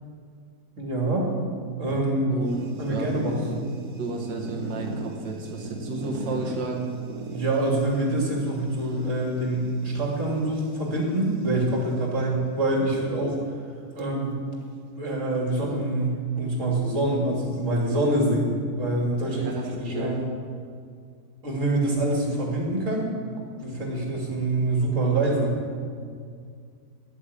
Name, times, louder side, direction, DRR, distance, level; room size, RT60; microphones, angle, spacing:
voice 1, 0.8-1.3 1.8-2.4 2.8-3.6 7.3-13.4 14.0-14.4 14.9-18.5 18.8-20.2 21.4-23.1 23.5-25.5, right 2 dB, 45° right, -2 dB, 3.1 m, -25 dB
voice 2, 2.3-3.1 3.4-3.5 4.0-6.9 19.3-20.1, right 3 dB, 90° right, 0 dB, 1.9 m, -32 dB
sound 1, 2.5-11.9 12.7-13.2 13.6-13.7 14.0-14.1 15.0-16.1, right 2 dB, 60° right, 1.7 m, -39 dB
10.5 x 8.5 x 8.3 m, 2.2 s
omnidirectional pair, 1.9 m